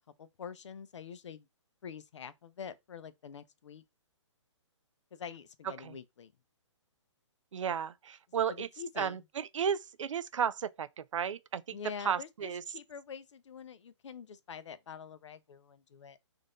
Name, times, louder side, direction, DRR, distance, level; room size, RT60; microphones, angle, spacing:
voice 1, 0.2-1.5 1.8-3.8 5.1-6.3 8.5-9.2 11.7-16.2, left 7 dB, 70° left, 0.6 m, -46 dB
voice 2, 7.5-8.7 9.0-11.6 12.1-12.6, right 8 dB, 80° right, 0.5 m, -33 dB
3.8 x 2.6 x 3.7 m
hypercardioid pair, 155°, 16 cm